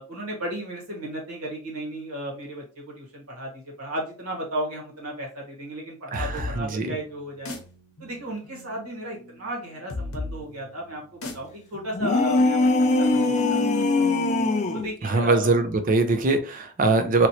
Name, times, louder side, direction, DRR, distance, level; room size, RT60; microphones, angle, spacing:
voice 1, 0.0-7.5 8.0-12.6 13.0-14.0 14.7-15.5, right 1 dB, 80° right, 1.6 m, -34 dB
sound 1, 6.1-13.5, left 2 dB, 70° left, 0.8 m, -38 dB
voice 2, 6.1-6.9 15.0-17.3, right 3 dB, 35° right, 0.5 m, -22 dB
sound 2, 11.9-14.9, left 2 dB, 30° left, 0.4 m, -21 dB
2.9 x 2.9 x 2.8 m
head